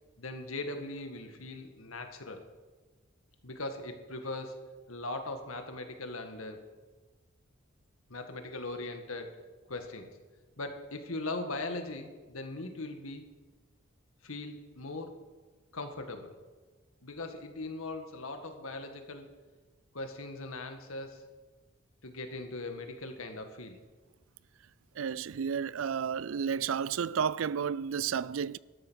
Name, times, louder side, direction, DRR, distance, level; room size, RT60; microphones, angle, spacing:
voice 1, 0.2-2.4 3.4-6.6 8.1-9.3 9.7-10.1 10.6-13.2 14.2-15.1 15.7-16.3 17.0-19.3 19.9-21.3 22.0-23.8, left 2 dB, 85° left, 1.9 m, -40 dB
voice 2, 25.0-28.6, right 7 dB, 75° right, 0.4 m, -32 dB
13.0 x 13.0 x 6.4 m
head